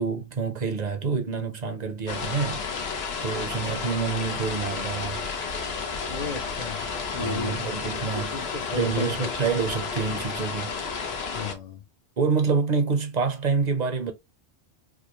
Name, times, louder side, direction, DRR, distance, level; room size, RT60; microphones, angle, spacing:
voice 1, 0.0-2.7 3.2-5.2 7.1-8.4 8.7-10.8 12.2-14.1, right 5 dB, 45° right, 0.8 m, -27 dB
sound 1, 2.1-11.5, left 5 dB, 75° left, 1.1 m, -32 dB
voice 2, 6.1-6.8 7.1-7.7 8.1-9.3 11.3-11.8, left 4 dB, 45° left, 0.7 m, -34 dB
4.8 x 2.1 x 3.0 m
omnidirectional pair, 1.1 m